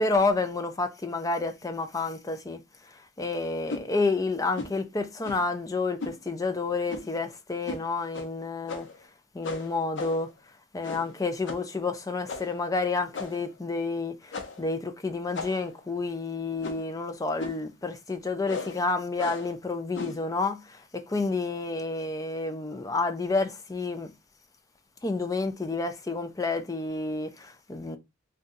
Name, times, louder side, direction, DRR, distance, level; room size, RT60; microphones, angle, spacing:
voice 1, 0.0-8.9 9.3-10.3 10.7-24.1 25.0-28.0, left 3 dB, 20° left, 0.4 m, -30 dB
sound 1, 3.7-3.9 4.5-4.8 5.2-5.5 6.0-6.2 6.9-7.2 7.6-7.8 8.1-8.3 8.7-9.0 9.4-10.3 10.8-11.1 11.5-11.7 12.3-12.6 13.1-13.5 14.3-14.7 15.3-15.8 16.6-16.9 17.4-17.7 18.4-18.8 19.2-19.5 19.9-20.2, left 3 dB, 70° left, 0.7 m, -37 dB
2.6 x 2.3 x 3.7 m
head